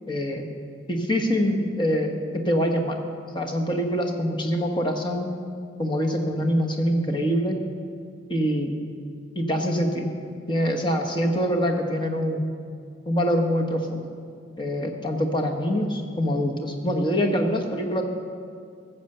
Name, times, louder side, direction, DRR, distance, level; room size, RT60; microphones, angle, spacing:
voice 1, 0.1-0.5 0.9-3.0 3.3-5.3 5.8-7.6 8.3-8.7 9.3-10.1 10.5-12.4 13.1-14.0 14.6-18.0, equal, 25° left, 3 dB, 1.3 m, -24 dB
15.5 x 7.3 x 6.8 m, 2.2 s
head